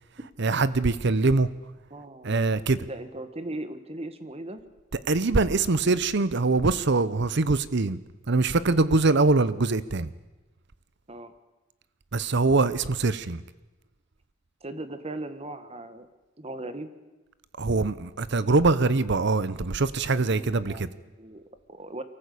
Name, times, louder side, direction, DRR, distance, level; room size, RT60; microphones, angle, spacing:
voice 1, 0.4-1.5 2.2-2.9 5.1-8.0 8.3-10.1 12.1-13.4 17.6-20.9, right 3 dB, 60° right, 16 dB, 0.8 m, -23 dB
voice 2, 1.9-2.4 2.8-4.6 9.2-9.3 11.1-11.3 14.6-16.1 16.4-16.9 20.2-22.0, right 2 dB, 30° right, 10 dB, 1.5 m, -38 dB
24.0 x 14.5 x 8.5 m, 1.1 s
head